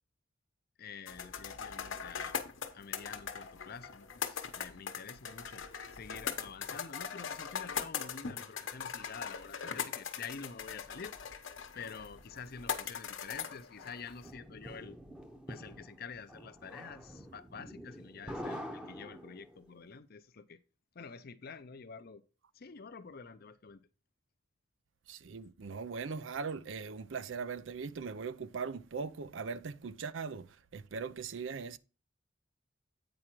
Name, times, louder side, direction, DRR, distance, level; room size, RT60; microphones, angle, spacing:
voice 1, 0.8-2.3 2.7-5.6 5.9-11.1 11.7-15.0 15.5-20.6 21.0-22.2 22.5-23.8, left 5 dB, 50° left, 0.6 m, -48 dB
sound 1, 1.1-14.3, left 7 dB, 75° left, 1.0 m, -41 dB
sound 2, 13.8-19.7, equal, 5° right, 0.8 m, -46 dB
voice 2, 25.1-31.8, right 5 dB, 70° right, 0.5 m, -40 dB
8.7 x 4.9 x 4.5 m
head